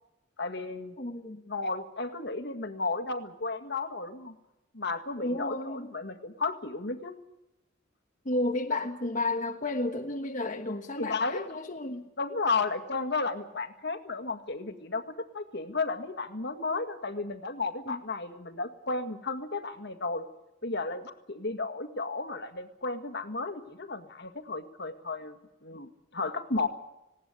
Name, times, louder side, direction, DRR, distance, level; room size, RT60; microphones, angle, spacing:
voice 1, 0.4-1.0 1.5-4.4 4.7-7.1 11.0-11.5 12.2-20.3 20.6-25.4 25.6-26.7, left 3 dB, 55° left, 1.9 m, -33 dB
voice 2, 1.0-1.4 5.2-5.9 8.2-12.1 17.9-18.0, left 2 dB, 40° left, 1.3 m, -32 dB
19.5 x 18.0 x 9.6 m
head